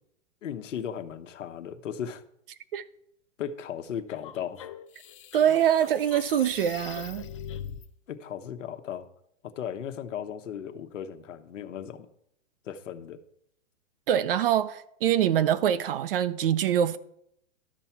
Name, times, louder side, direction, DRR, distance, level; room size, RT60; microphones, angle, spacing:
voice 1, 0.4-2.2 3.4-4.6 8.1-9.0 9.4-12.1 12.6-13.2, left 8 dB, 75° left, 1.2 m, -36 dB
sound 1, 4.1-7.9, left 9 dB, 25° left, 0.4 m, -42 dB
voice 2, 5.3-7.3 14.1-17.0, right 10 dB, 45° right, 0.6 m, -24 dB
12.0 x 4.5 x 7.2 m
hypercardioid pair, 150°, 38 cm